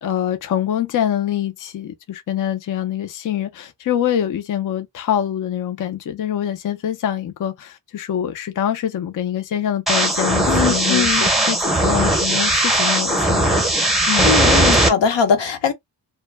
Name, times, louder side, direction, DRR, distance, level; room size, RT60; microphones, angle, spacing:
voice 1, 0.0-14.3, left 10 dB, 45° left, 0.5 m, -25 dB
sound 1, 9.9-14.9, right 1 dB, ahead, 0.7 m, -18 dB
voice 2, 10.5-11.3 14.2-15.7, left 6 dB, 75° left, 0.8 m, -20 dB
2.1 x 2.1 x 3.2 m
cardioid pair, 90°, 43 cm